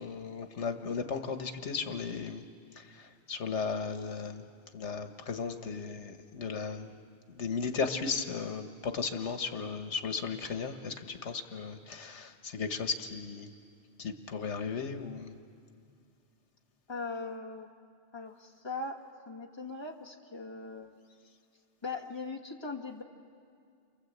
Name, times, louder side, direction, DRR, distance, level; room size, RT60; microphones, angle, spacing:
voice 1, 0.0-2.4 2.8-4.4 4.7-7.0 7.4-13.5 14.0-15.4, left 5 dB, 85° left, 7 dB, 1.5 m, -36 dB
voice 2, 16.9-17.7 18.1-21.0 21.8-23.0, left 3 dB, 25° left, 0 dB, 1.9 m, -40 dB
29.0 x 23.5 x 8.1 m, 2.4 s
omnidirectional pair, 1.2 m